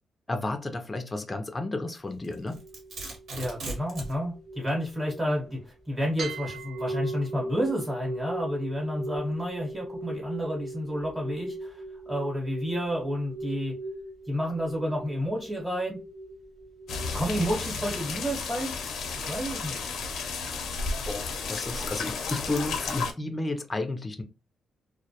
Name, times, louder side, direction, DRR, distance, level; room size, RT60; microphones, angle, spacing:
voice 1, 0.3-2.6 21.1-24.2, left 2 dB, 20° left, 0.3 m, -32 dB
Domestic sounds home sounds, 2.2-4.2, right 2 dB, 70° right, 1.1 m, -37 dB
sound 1, 2.3-5.7 6.2-17.2, right 2 dB, 55° right, 0.8 m, -39 dB
voice 2, 3.3-13.8 14.3-16.0 17.1-18.8 19.2-19.9, equal, 20° right, 0.9 m, -30 dB
sound 2, 16.9-23.1, left 4 dB, 85° left, 0.4 m, -33 dB
2.2 x 2.0 x 2.7 m
cardioid pair, 100°, 0 cm